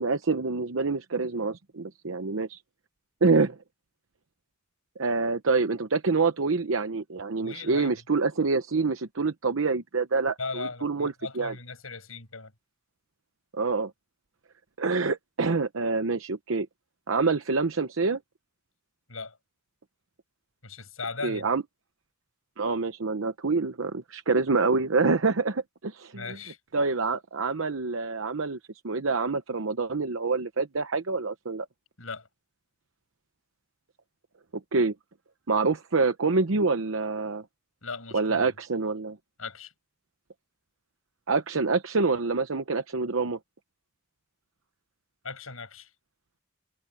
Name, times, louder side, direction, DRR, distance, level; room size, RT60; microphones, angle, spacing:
voice 1, 0.0-2.6 3.2-3.6 5.0-11.5 13.5-13.9 14.8-16.7 17.1-18.2 21.2-21.6 22.6-26.2 26.7-28.6 28.8-31.7 34.7-34.9 35.5-37.4 38.1-39.2 41.3-43.4, right 4 dB, 70° right, 0.9 m, -26 dB
voice 2, 7.4-8.0 10.4-12.5 19.1-19.4 20.6-21.4 26.1-26.6 32.0-32.3 37.8-38.5 39.4-39.7 45.2-45.9, left 4 dB, 80° left, 6.9 m, -38 dB
head